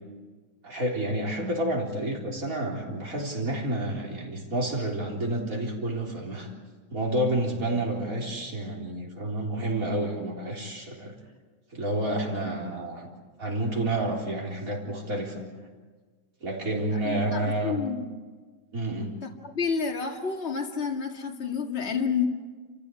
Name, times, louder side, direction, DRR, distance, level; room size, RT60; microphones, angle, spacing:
voice 1, 0.6-6.5 6.9-11.2 11.7-13.1 13.4-15.4 16.4-17.8 18.7-19.2, right 1 dB, 65° right, -1 dB, 4.3 m, -29 dB
voice 2, 16.9-18.1 19.4-22.3, left 6 dB, 45° left, 2 dB, 2.3 m, -29 dB
29.0 x 15.0 x 8.5 m, 1.4 s
omnidirectional pair, 1.6 m